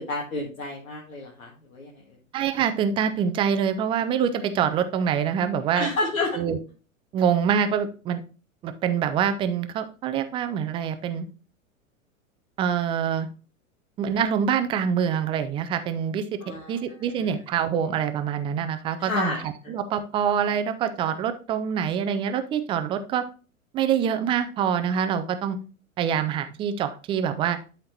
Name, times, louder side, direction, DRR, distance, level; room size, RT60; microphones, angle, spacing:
voice 1, 0.0-2.0 5.8-6.4 16.4-16.8 17.2-17.3 19.0-19.4, left 2 dB, 70° left, -2 dB, 1.8 m, -30 dB
voice 2, 2.3-5.9 6.3-6.6 7.1-8.2 8.6-11.3 12.6-13.3 14.0-16.2 16.7-23.2 23.7-25.6 26.0-27.6, right 8 dB, 15° right, 10 dB, 0.4 m, -25 dB
12.0 x 4.4 x 2.9 m, 0.36 s
figure-of-eight pair, 95°, 42 cm